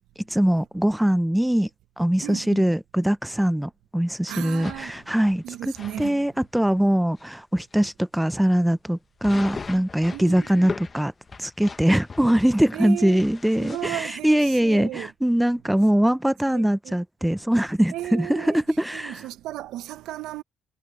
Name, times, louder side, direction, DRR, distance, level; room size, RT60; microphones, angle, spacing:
voice 1, 0.3-1.7 2.0-5.7 6.0-11.1 11.4-19.2, right 1 dB, 5° right, 0.6 m, -22 dB
voice 2, 2.2-2.7 4.3-5.0 5.4-6.2 10.1-10.7 12.7-13.2 13.6-15.1 16.5-17.0 17.9-18.6 18.9-20.4, right 14 dB, 90° right, 0.8 m, -35 dB
sound 1, 4.6-6.1 6.7-6.8 7.2-7.3 7.7-7.8 9.2-13.9, left 4 dB, 35° left, 0.9 m, -39 dB
cardioid pair, 90°, 0 cm